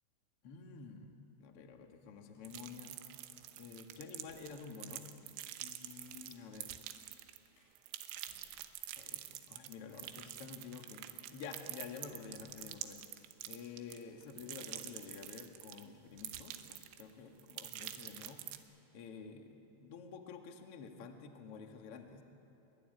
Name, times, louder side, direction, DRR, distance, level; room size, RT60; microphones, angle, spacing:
voice 1, 0.4-3.0 3.5-5.1 5.6-6.7 9.0-22.2, left 5 dB, 55° left, 4 dB, 1.6 m, -50 dB
sound 1, 2.1-2.7 3.3-3.5 4.2-4.6 5.1-5.4 5.9-6.3 7.0-7.2 7.6-7.7 8.1-9.8 10.1-10.3 10.8-10.9 11.4-11.6 12.1-13.2, left 1 dB, 80° left, 11.0 m, -71 dB
sound 2, 2.5-7.5 7.8-15.8 16.2-17.1 17.4-18.6, right 13 dB, 90° right, 3.7 m, -47 dB
24.0 x 23.0 x 9.7 m, 2.8 s
omnidirectional pair, 5.7 m